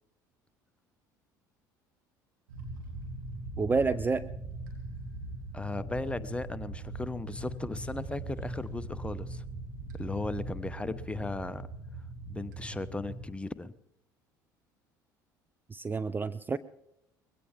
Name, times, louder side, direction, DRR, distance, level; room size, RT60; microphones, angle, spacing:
sound 1, 2.5-13.3, right 2 dB, 80° right, 2.9 m, -41 dB
voice 1, 3.6-4.2 15.7-16.6, right 4 dB, 20° right, 14 dB, 0.5 m, -29 dB
voice 2, 5.5-9.4 9.9-11.7 12.3-13.7, left 2 dB, 10° left, 13 dB, 0.8 m, -36 dB
21.0 x 16.5 x 3.6 m, 0.82 s
hypercardioid pair, 60°, 10 cm